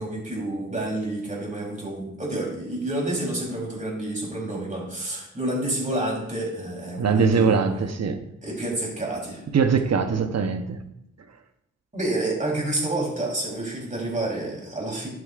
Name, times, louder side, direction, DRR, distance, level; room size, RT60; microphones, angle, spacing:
voice 1, 0.0-7.8 8.4-9.4 11.9-15.1, right 1 dB, 25° right, -3 dB, 3.5 m, -29 dB
voice 2, 7.0-8.2 9.5-10.8, right 5 dB, 60° right, 8 dB, 0.9 m, -22 dB
11.0 x 8.5 x 2.5 m, 0.79 s
wide cardioid pair, 105°, 29 cm